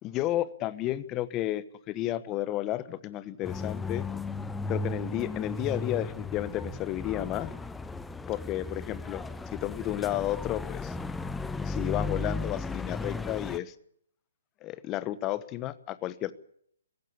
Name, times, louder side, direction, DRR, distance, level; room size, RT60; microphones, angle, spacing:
voice 1, 0.0-4.1 4.7-7.5 8.3-10.9 11.6-13.7 14.6-16.3, left 14 dB, 20° left, 16 dB, 1.1 m, -32 dB
sound 1, 3.4-13.6, left 3 dB, 5° left, 0.8 m, -35 dB
22.0 x 16.5 x 8.5 m, 0.67 s
figure-of-eight pair, 135°, 0 cm